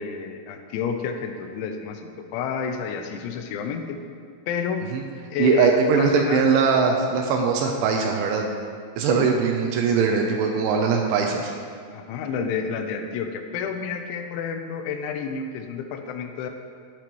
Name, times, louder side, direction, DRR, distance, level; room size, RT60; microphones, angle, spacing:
voice 1, 0.0-4.0 4.5-4.9 5.3-6.4 9.0-9.4 9.9-10.2 11.2-11.3 11.9-16.5, left 6 dB, 85° left, 6 dB, 3.0 m, -30 dB
voice 2, 5.4-8.5 9.0-11.5, right 5 dB, 85° right, 1 dB, 3.1 m, -21 dB
13.5 x 8.3 x 3.0 m, 2.1 s
omnidirectional pair, 5.4 m